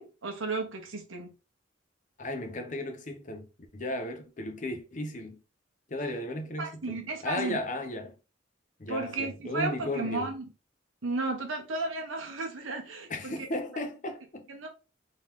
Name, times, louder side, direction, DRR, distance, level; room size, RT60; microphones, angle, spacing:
voice 1, 0.0-1.3 6.6-7.6 8.9-10.4 11.0-13.5 14.5-14.7, right 3 dB, 80° right, 1.1 m, -34 dB
voice 2, 2.2-5.4 5.9-8.1 8.8-10.3 13.1-14.5, left 1 dB, 40° left, 0.7 m, -35 dB
3.9 x 2.8 x 3.5 m
head